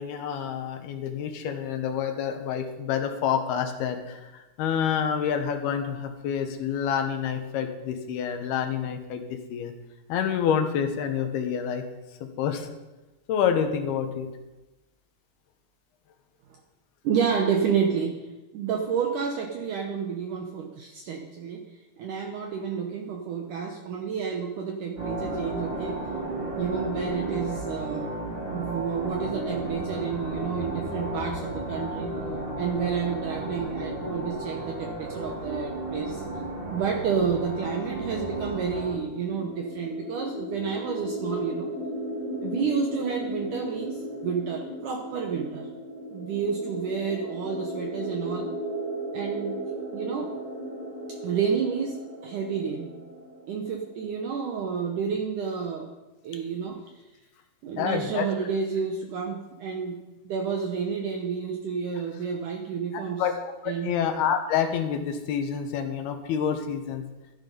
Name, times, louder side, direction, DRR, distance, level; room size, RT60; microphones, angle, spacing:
voice 1, 0.0-9.2 9.5-9.7 10.1-11.8 12.2-12.7 13.3-14.3 57.8-58.3 63.2-63.3 63.6-67.0, left 8 dB, 75° left, 6 dB, 2.8 m, -28 dB
voice 2, 17.0-18.2 18.5-21.6 22.0-26.0 26.6-28.1 28.5-32.1 32.6-36.2 36.7-41.7 42.4-45.7 46.1-48.5 49.1-49.6 49.9-50.3 51.2-52.9 53.5-55.9 56.2-56.8 57.6-60.0 60.2-63.2 63.7-63.9, right 6 dB, 75° right, 2 dB, 1.9 m, -30 dB
sound 1, 25.0-39.0, right 1 dB, 20° right, 4.8 m, -33 dB
sound 2, 38.7-54.4, equal, 10° left, 4.4 m, -36 dB
13.0 x 9.7 x 5.4 m, 1.1 s
omnidirectional pair, 4.8 m